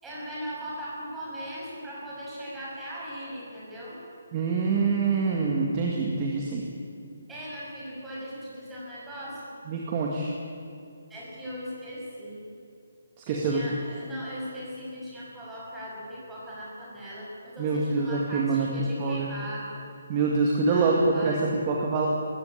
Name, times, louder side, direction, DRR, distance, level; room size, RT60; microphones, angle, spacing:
voice 1, 0.0-4.0 7.3-9.5 11.1-12.4 13.2-19.9 20.7-21.4, equal, 5° right, -7 dB, 6.1 m, -38 dB
voice 2, 4.3-6.7 9.7-10.3 13.2-13.6 17.6-18.7 19.0-19.3 20.1-22.1, right 4 dB, 25° right, -1 dB, 2.0 m, -25 dB
21.0 x 15.5 x 9.9 m, 2.5 s
hypercardioid pair, 170°, 0 cm